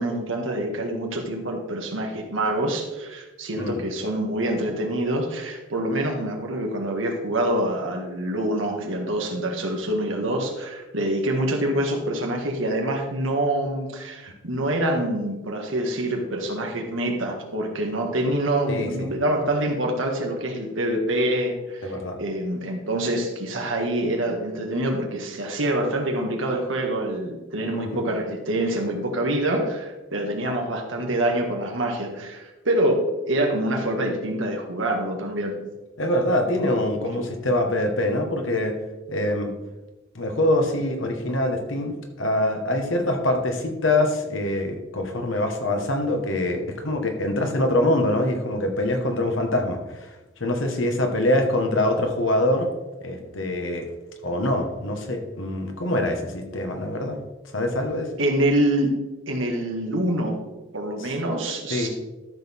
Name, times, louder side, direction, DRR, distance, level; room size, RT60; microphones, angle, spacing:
voice 1, 0.0-35.6 58.2-59.0 59.3-60.5 60.7-61.9, right 1 dB, 75° right, 2 dB, 1.8 m, -26 dB
voice 2, 18.7-19.1 21.8-22.2 27.7-28.0 36.0-38.7 39.1-39.5 40.1-50.1 50.4-52.7 53.0-53.9 54.2-57.2 57.5-58.1 61.0-61.1 61.7-61.9, left 1 dB, 80° left, 4 dB, 1.6 m, -24 dB
13.0 x 6.3 x 3.7 m, 1.1 s
head